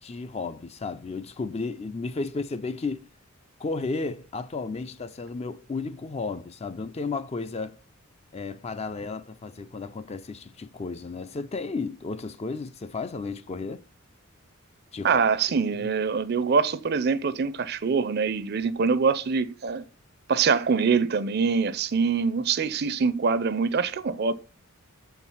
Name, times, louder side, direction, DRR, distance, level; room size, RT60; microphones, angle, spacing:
voice 1, 0.0-3.1 3.6-7.8 8.3-13.8 14.9-15.2 15.5-15.9, left 4 dB, 30° left, 0.4 m, -33 dB
voice 2, 15.0-19.8 20.3-24.3, right 5 dB, 45° right, 0.5 m, -24 dB
7.5 x 4.6 x 5.6 m
head